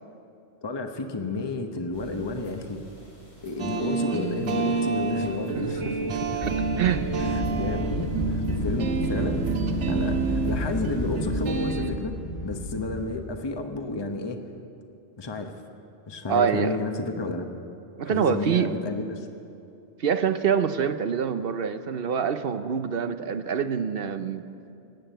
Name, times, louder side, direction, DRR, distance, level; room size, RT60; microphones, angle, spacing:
voice 1, 0.6-2.8 3.4-6.4 7.2-8.0 8.3-9.4 9.9-14.4 15.2-15.5 16.1-17.5 18.1-19.3, left 3 dB, 25° left, 5 dB, 0.9 m, -31 dB
sound 1, 1.9-11.7, right 1 dB, 90° left, 4.5 m, -45 dB
sound 2, 3.6-11.9, right 5 dB, 85° right, 1.3 m, -29 dB
Wind, 6.4-13.4, equal, 75° left, 4.5 m, -31 dB
voice 2, 6.4-7.1 16.3-16.8 18.0-18.7 20.0-24.4, right 7 dB, 60° right, 10 dB, 0.8 m, -25 dB
18.5 x 8.8 x 9.0 m, 2.6 s
omnidirectional pair, 1.2 m